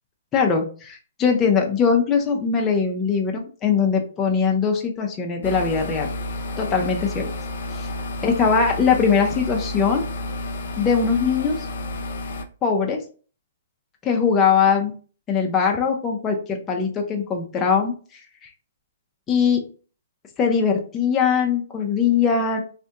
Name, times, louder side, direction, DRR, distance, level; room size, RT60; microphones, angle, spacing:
voice 1, 0.3-6.1 6.6-7.3 8.2-10.0 10.8-11.6 12.6-13.0 14.0-14.9 15.3-17.9 19.3-19.6 20.4-22.6, left 6 dB, 15° left, 1 dB, 0.5 m, -21 dB
sound 1, 5.4-12.4, left 1 dB, 65° left, 0.5 m, -31 dB
3.4 x 2.6 x 2.5 m, 0.38 s
hypercardioid pair, 150°, 0 cm